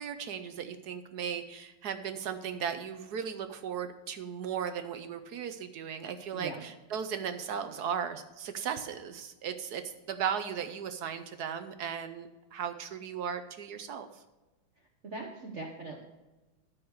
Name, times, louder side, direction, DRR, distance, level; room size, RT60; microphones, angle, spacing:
voice 1, 0.0-9.8 10.1-14.1, right 7 dB, 65° right, 9 dB, 1.0 m, -36 dB
voice 2, 6.3-6.7 15.0-16.0, right 3 dB, 45° right, 1 dB, 1.1 m, -41 dB
13.0 x 4.8 x 6.4 m, 1.1 s
omnidirectional pair, 2.3 m